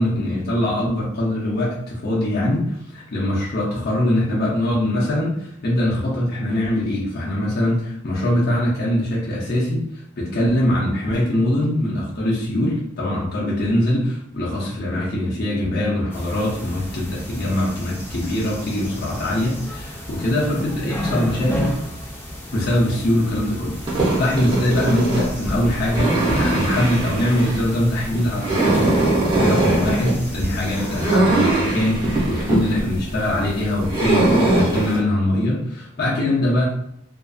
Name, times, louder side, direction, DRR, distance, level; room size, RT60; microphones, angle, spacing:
voice 1, 0.0-9.8 10.2-21.8 22.5-29.0 29.4-36.6, left 1 dB, 50° left, -5 dB, 0.6 m, -22 dB
sound 1, 16.1-31.2, equal, 10° left, 0.4 m, -33 dB
sound 2, 23.8-35.0, right 2 dB, 25° right, 0.8 m, -22 dB
2.5 x 2.5 x 2.3 m, 0.75 s
head